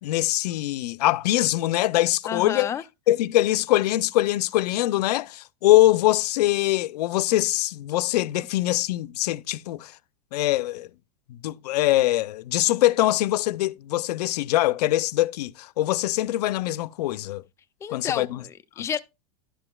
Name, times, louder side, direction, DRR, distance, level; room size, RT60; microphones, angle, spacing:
voice 1, 0.0-2.7 3.1-9.9 10.3-10.9 11.3-17.4 17.9-18.4 18.8-18.9, left 16 dB, 80° left, 0.5 m, -23 dB
voice 2, 2.3-2.8 17.8-19.0, left 8 dB, 15° left, 0.3 m, -30 dB
11.5 x 7.8 x 2.3 m
supercardioid pair, 160°, 20 cm